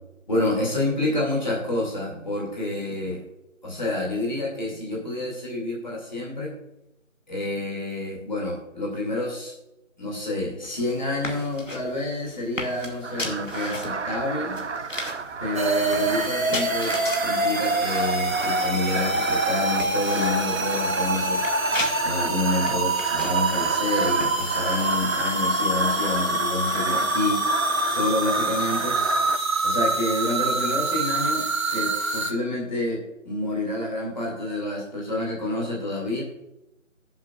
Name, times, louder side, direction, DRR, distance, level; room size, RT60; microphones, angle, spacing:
voice 1, 0.3-3.2 3.6-6.6 7.3-9.5 10.0-14.6 15.4-21.4 22.0-27.4 27.8-29.0 29.6-36.2, left 2 dB, 35° left, -3 dB, 2.6 m, -28 dB
sound 1, 10.6-24.7, left 2 dB, 70° left, 2.0 m, -37 dB
sound 2, 13.0-29.4, right 5 dB, 60° right, 0.6 m, -33 dB
sound 3, 15.5-32.3, right 2 dB, 85° right, 1.3 m, -25 dB
19.5 x 7.3 x 2.5 m, 0.90 s
figure-of-eight pair, 160°, 40 cm